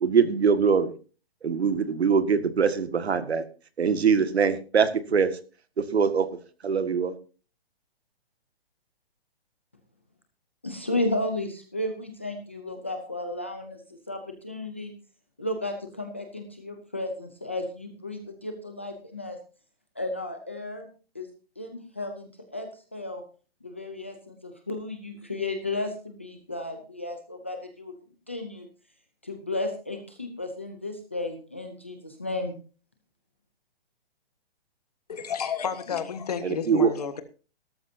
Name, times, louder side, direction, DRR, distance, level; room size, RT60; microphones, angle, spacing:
voice 1, 0.0-0.9 1.4-3.4 3.8-5.3 5.8-6.3 6.6-7.1 36.4-36.9, right 6 dB, 85° right, 11 dB, 1.9 m, -23 dB
voice 2, 10.6-13.8 14.1-14.9 15.4-19.4 20.0-20.9 21.1-21.3 21.6-23.2 23.6-27.9 28.3-28.7 29.2-32.5, left 2 dB, 10° left, 4 dB, 0.5 m, -33 dB
voice 3, 35.1-37.2, left 7 dB, 40° left, 11 dB, 1.4 m, -31 dB
17.5 x 13.0 x 2.7 m, 0.36 s
hypercardioid pair, 180°, 31 cm